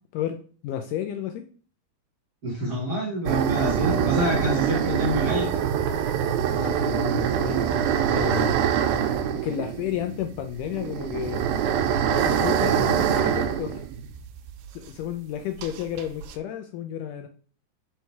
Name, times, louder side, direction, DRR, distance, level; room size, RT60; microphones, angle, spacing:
voice 1, 0.1-1.4 6.5-8.6 9.4-11.4 12.1-13.8 14.8-17.3, left 10 dB, 80° left, 5 dB, 1.9 m, -32 dB
voice 2, 2.4-5.6, right 1 dB, 40° right, -4 dB, 1.6 m, -26 dB
sound 1, 3.3-14.7 14.9-15.0 15.6-16.3, right 8 dB, 85° right, 2.4 m, -25 dB
5.5 x 4.7 x 4.6 m, 0.41 s
omnidirectional pair, 4.0 m